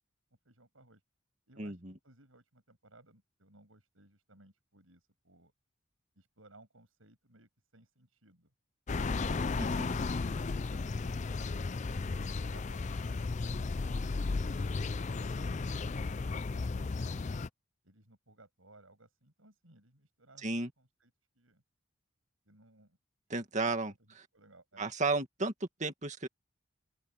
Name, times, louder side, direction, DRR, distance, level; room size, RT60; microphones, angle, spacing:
voice 1, 0.4-1.0 1.5-5.5 6.2-8.5 9.2-9.5 17.8-21.6 22.5-23.0 23.3-24.9, right 2 dB, 80° right, 7.6 m, -62 dB
voice 2, 1.6-1.9 9.6-9.7 20.4-20.7 23.3-23.9 24.8-25.5 25.8-26.3, right 3 dB, 35° right, 2.2 m, -33 dB
sound 1, 8.9-17.5, left 3 dB, 35° left, 0.4 m, -34 dB
head